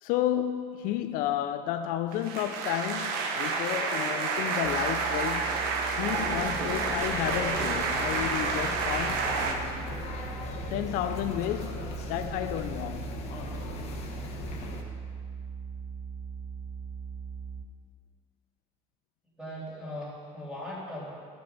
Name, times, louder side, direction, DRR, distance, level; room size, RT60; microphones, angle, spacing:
voice 1, 0.0-5.6 6.0-9.3 10.7-13.2, left 12 dB, 60° left, 0.4 m, -32 dB
sound 1, 2.1-9.5, right 4 dB, 75° right, 1.0 m, -29 dB
sound 2, 4.6-17.7, right 6 dB, 45° right, 0.7 m, -40 dB
sound 3, 6.1-14.8, left 4 dB, 45° left, 1.1 m, -39 dB
voice 2, 19.4-21.1, left 1 dB, 5° right, 2.5 m, -39 dB
13.0 x 5.1 x 5.5 m
cardioid pair, 165°, 16 cm